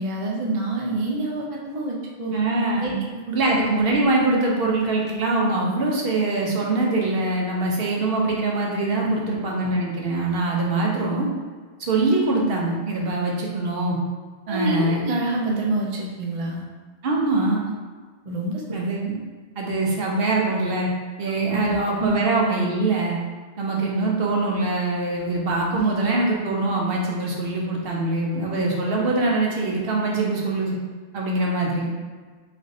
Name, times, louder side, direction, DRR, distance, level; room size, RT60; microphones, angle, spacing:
voice 1, 0.0-2.3 2.8-2.9 3.3-3.4 9.0-9.2 14.5-16.6 18.3-18.6 21.5-22.2 25.7-26.2, right 2 dB, 40° right, -2 dB, 0.5 m, -27 dB
voice 2, 2.3-2.9 3.3-11.3 11.8-14.0 14.5-15.0 17.0-17.6 18.7-19.1 19.6-20.9 21.2-23.2 23.6-30.7 31.1-31.9, right 2 dB, 65° right, -2 dB, 0.9 m, -23 dB
3.2 x 2.5 x 4.0 m, 1.5 s
omnidirectional pair, 1.1 m